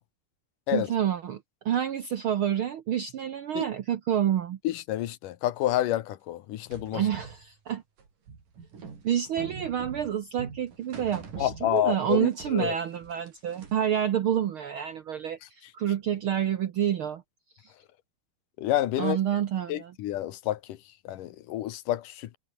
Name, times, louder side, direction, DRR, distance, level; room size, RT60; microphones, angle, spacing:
voice 1, 0.7-4.6 6.9-7.8 9.0-17.2 17.6-17.7 19.0-19.9, right 10 dB, 70° right, 1.3 m, -28 dB
voice 2, 4.6-7.0 11.4-12.8 18.6-19.2 19.7-20.8 21.0-22.4, left 13 dB, 85° left, 2.8 m, -29 dB
sound 1, 6.7-12.1 12.4-13.9, right 5 dB, 90° right, 6.2 m, -44 dB
omnidirectional pair, 3.6 m